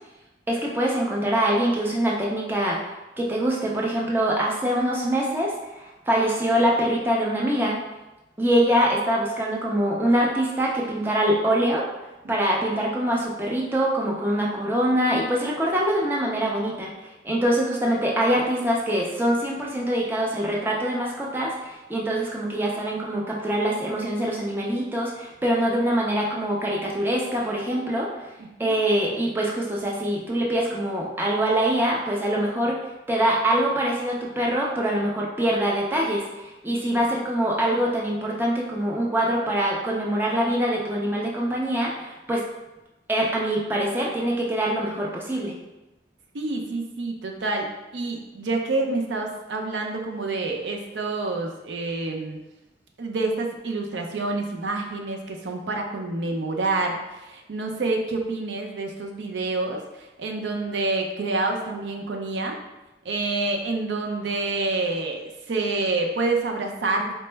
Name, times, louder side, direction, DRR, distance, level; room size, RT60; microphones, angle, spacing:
voice 1, 0.5-2.8 3.2-7.8 8.4-11.8 12.3-16.9 17.2-28.1 28.6-32.8 33.1-42.4 43.1-45.6, right 1 dB, 10° right, -3 dB, 0.4 m, -24 dB
voice 2, 28.4-28.8 36.8-37.0 46.3-52.4 53.0-62.6 63.0-67.1, right 3 dB, 85° right, 2 dB, 0.5 m, -28 dB
4.3 x 2.0 x 3.2 m, 1.0 s
head